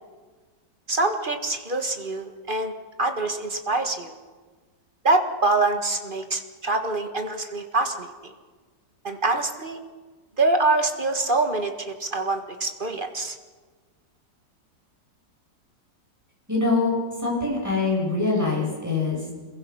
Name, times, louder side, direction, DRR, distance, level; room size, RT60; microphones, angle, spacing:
voice 1, 0.9-2.7 3.0-4.1 5.0-8.3 9.0-9.8 10.4-13.4, right 2 dB, 30° right, 6 dB, 1.7 m, -25 dB
voice 2, 16.5-16.9 17.2-19.3, left 3 dB, 10° right, -3 dB, 7.8 m, -24 dB
26.5 x 22.0 x 6.0 m, 1.4 s
omnidirectional pair, 1.9 m